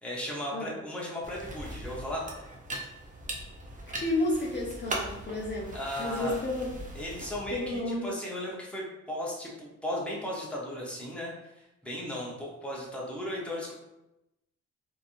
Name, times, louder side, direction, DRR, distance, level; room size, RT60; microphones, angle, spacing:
voice 1, 0.0-2.2 5.7-6.4 6.9-13.7, equal, 5° left, -4 dB, 0.8 m, -36 dB
sound 1, 1.2-7.8, right 1 dB, 25° right, 0.6 m, -40 dB
voice 2, 4.0-6.7 7.5-8.1, left 2 dB, 40° left, -4 dB, 0.6 m, -31 dB
3.2 x 2.7 x 2.5 m, 0.93 s
cardioid pair, 110°, 29 cm